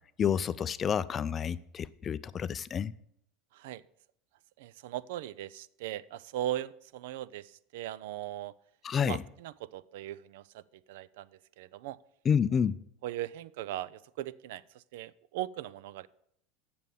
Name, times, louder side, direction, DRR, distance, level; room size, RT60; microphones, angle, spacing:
voice 1, 0.2-2.9 8.8-9.2 12.3-12.8, left 7 dB, 25° left, 16 dB, 0.4 m, -29 dB
voice 2, 4.6-8.5 9.0-10.6 10.9-11.3 11.6-12.0 13.0-16.1, right 13 dB, 75° right, 20 dB, 0.4 m, -39 dB
9.2 x 6.8 x 6.9 m, 0.72 s
supercardioid pair, 130°, 0 cm